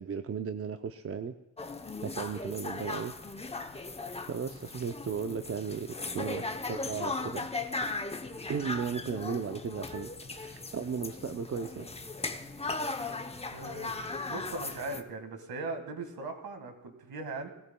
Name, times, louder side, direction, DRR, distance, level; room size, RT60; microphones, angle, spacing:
voice 1, 0.0-1.3 2.0-3.1 3.4-3.7 4.3-5.9 6.1-7.5 8.5-11.9, right 6 dB, 35° right, 8 dB, 0.6 m, -35 dB
sound 1, 1.6-15.0, left 3 dB, 15° left, 0.7 m, -38 dB
voice 2, 13.5-14.0 14.3-17.5, right 3 dB, 60° right, 6 dB, 1.8 m, -39 dB
19.5 x 13.5 x 2.3 m, 0.97 s
cardioid pair, 85°, 41 cm